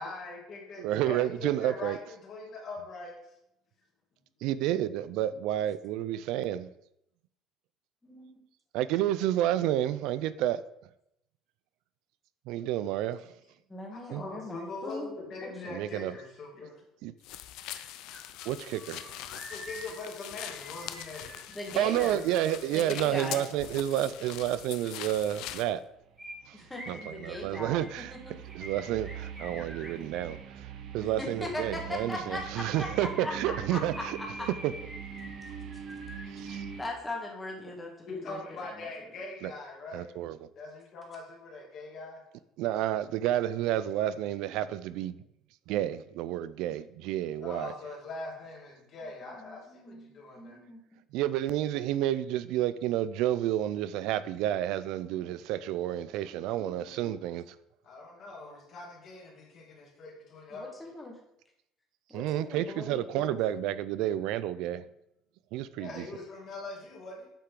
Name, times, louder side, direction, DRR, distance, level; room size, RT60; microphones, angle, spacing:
voice 1, 0.0-3.1 13.9-16.8 19.5-21.4 38.1-40.1 40.6-42.2 47.4-50.6 57.8-60.9 65.8-67.3, left 3 dB, 45° left, 2.6 m, -42 dB
voice 2, 0.8-2.0 4.4-6.7 8.7-10.6 12.5-13.2 14.1-14.2 15.7-16.1 17.0-17.1 18.5-19.0 21.7-25.8 26.5-26.6 26.9-28.2 28.5-30.7 30.9-34.2 34.6-34.7 36.3-36.6 39.4-39.5 39.9-40.4 42.6-45.2 45.7-47.7 51.1-57.5 62.1-64.8 65.5-66.1, right 12 dB, 75° right, 0.4 m, -30 dB
voice 3, 13.7-15.1 15.4-15.7 21.5-22.2 22.7-23.4 26.5-28.3 31.0-34.5 36.4-38.6 49.2-51.0 56.5-57.3 60.5-61.2 62.1-63.4, left 1 dB, 10° left, 1.5 m, -40 dB
sound 1, 17.2-25.7, left 12 dB, 70° left, 0.5 m, -42 dB
sound 2, 17.7-17.8 18.1-22.9 26.2-30.4 32.2-36.9 37.1-37.2, equal, 5° right, 1.3 m, -47 dB
sound 3, 26.2-36.8, right 8 dB, 55° right, 0.9 m, -43 dB
8.3 x 5.7 x 3.8 m
cardioid pair, 150°, 0 cm